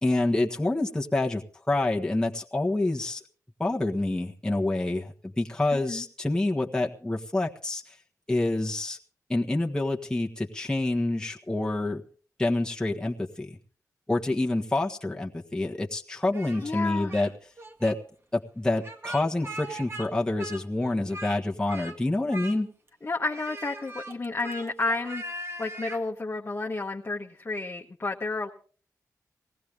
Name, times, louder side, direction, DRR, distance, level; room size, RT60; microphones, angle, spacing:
voice 1, 0.0-3.2 3.6-7.9 8.3-9.0 9.3-12.0 12.4-13.6 14.1-17.3 17.8-18.0 18.3-22.7, left 2 dB, 10° left, -2 dB, 1.5 m, -27 dB
voice 2, 5.7-6.0 16.6-17.1 23.0-25.2 25.6-28.5, left 3 dB, 35° left, 1 dB, 1.3 m, -31 dB
Speech, 16.3-17.3 17.6-18.0 18.8-20.1 20.4-21.4 21.7-22.0 22.3-22.9 23.3-26.0, right 1 dB, 40° right, 1.8 m, -40 dB
19.0 x 15.5 x 3.5 m, 0.41 s
cardioid pair, 55°, 7 cm